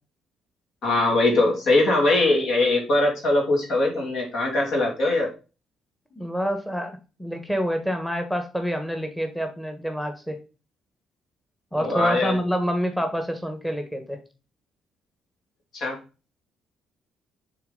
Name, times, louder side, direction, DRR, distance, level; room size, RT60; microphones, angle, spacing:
voice 1, 0.8-5.3 11.8-12.3 15.7-16.0, left 2 dB, 65° left, 0 dB, 2.6 m, -21 dB
voice 2, 6.2-6.9 7.2-10.4 11.7-14.2, equal, 5° left, 6 dB, 1.5 m, -27 dB
6.6 x 3.9 x 3.9 m, 0.32 s
supercardioid pair, 60°, 0 cm